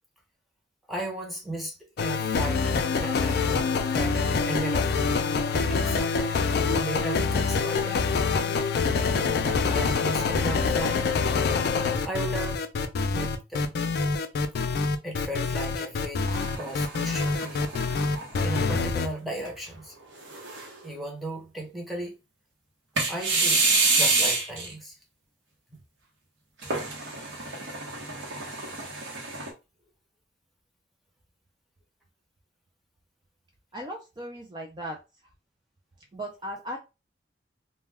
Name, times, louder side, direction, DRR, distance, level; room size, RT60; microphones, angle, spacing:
voice 1, 0.9-3.5 3.9-4.9 5.5-6.4 6.7-8.2 9.3-11.0 12.0-12.6 13.1-13.7 15.0-16.3 16.6-18.1 18.4-19.9 20.8-22.2 23.1-25.0 25.7-25.8 26.6-26.8, right 1 dB, ahead, 0.7 m, -36 dB
sound 1, 2.0-19.1, left 4 dB, 60° left, 0.3 m, -26 dB
sound 2, 16.3-18.8 19.4-19.5 20.2-20.9 23.0-24.7 26.6-29.5, right 3 dB, 85° right, 0.9 m, -28 dB
voice 2, 33.7-35.0 36.1-36.8, equal, 25° right, 0.3 m, -37 dB
2.2 x 2.2 x 3.2 m
head